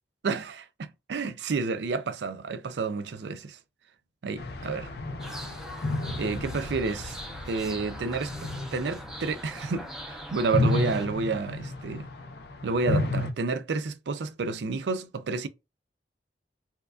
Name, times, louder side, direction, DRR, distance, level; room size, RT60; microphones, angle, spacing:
voice 1, 1.1-3.6 4.2-4.9 6.2-7.2 7.5-12.1 12.6-15.5, right 4 dB, 75° right, 0.4 m, -30 dB
sound 1, 4.4-10.0 10.4-13.3, left 2 dB, 60° left, 0.6 m, -32 dB
sound 2, 5.2-11.1, equal, 5° right, 0.6 m, -42 dB
4.4 x 2.3 x 2.4 m
head